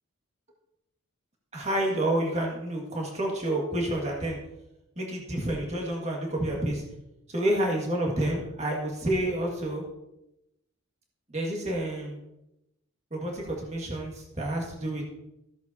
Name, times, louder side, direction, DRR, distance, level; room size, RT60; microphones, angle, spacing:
voice 1, 1.5-4.4 5.0-6.8 7.3-9.8 11.3-12.2 13.1-15.0, right 1 dB, 30° right, -1 dB, 1.9 m, -29 dB
14.5 x 7.9 x 2.8 m, 0.87 s
head